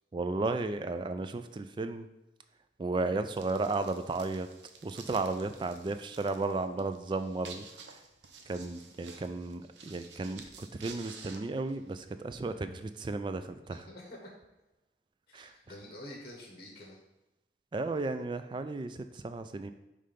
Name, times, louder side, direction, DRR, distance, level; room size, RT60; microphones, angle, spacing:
voice 1, 0.1-2.1 2.8-4.5 4.8-8.0 8.5-13.8 15.3-15.5 17.7-19.7, right 3 dB, 25° right, 9 dB, 0.3 m, -34 dB
sound 1, 3.3-12.1, right 5 dB, 75° right, 0.7 m, -51 dB
voice 2, 13.7-14.3 15.3-17.0, left 1 dB, 30° left, -2 dB, 1.0 m, -48 dB
5.7 x 3.3 x 5.1 m, 0.97 s
head